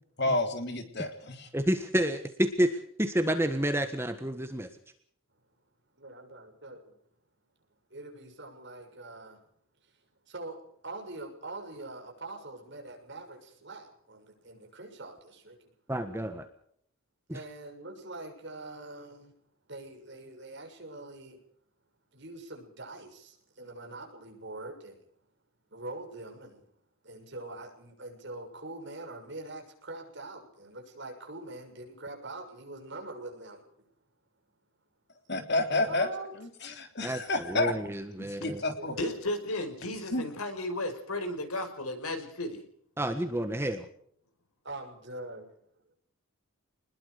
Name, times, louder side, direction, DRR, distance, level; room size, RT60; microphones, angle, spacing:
voice 1, 0.2-1.5 35.3-36.1 36.3-37.7 38.2-38.9 40.1-40.2, left 2 dB, 50° left, 6 dB, 3.4 m, -30 dB
voice 2, 1.5-4.7 15.9-16.5 17.3-17.4 37.0-37.2 37.5-38.6 43.0-43.9, right 1 dB, 10° right, 7 dB, 1.5 m, -29 dB
voice 3, 6.0-6.9 7.9-9.4 10.3-10.6 10.8-15.6 17.3-19.3 19.7-21.4 22.1-25.0 25.7-26.6 27.0-33.6 35.7-36.3 38.8-39.1 44.6-45.5, right 2 dB, 55° right, 2 dB, 6.6 m, -43 dB
voice 4, 39.0-42.6, left 1 dB, 85° left, 7 dB, 5.1 m, -34 dB
26.5 x 20.5 x 5.1 m, 0.65 s
head